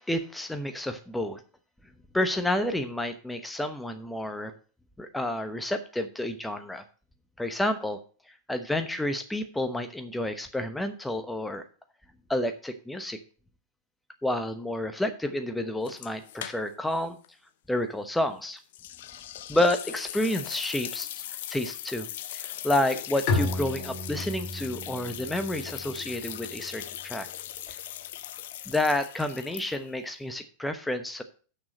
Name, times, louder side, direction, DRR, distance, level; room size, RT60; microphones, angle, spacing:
voice 1, 0.0-1.4 2.1-4.5 5.0-6.8 7.4-8.0 8.5-11.6 12.3-13.2 14.2-17.2 17.7-18.6 19.5-21.1 21.5-22.1 22.3-27.3 27.7-27.8 28.7-31.2, left 1 dB, 5° left, 9 dB, 1.0 m, -29 dB
sound 1, 15.8-17.0 17.2-17.3 18.7-30.0, left 12 dB, 55° left, 0.6 m, -39 dB
Bowed string instrument, 23.3-26.8, left 2 dB, 40° left, 2.1 m, -33 dB
6.4 x 6.1 x 7.5 m, 0.39 s
figure-of-eight pair, 90°, 0 cm